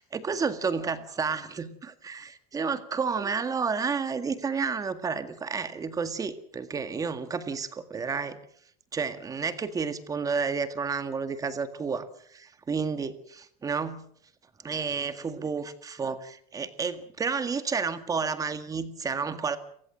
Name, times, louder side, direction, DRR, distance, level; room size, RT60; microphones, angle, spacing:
voice 1, 0.0-8.4 8.9-14.1 14.6-19.6, right 5 dB, 20° right, 11 dB, 1.9 m, -31 dB
29.5 x 16.0 x 7.7 m, 0.65 s
cardioid pair, 155°, 18 cm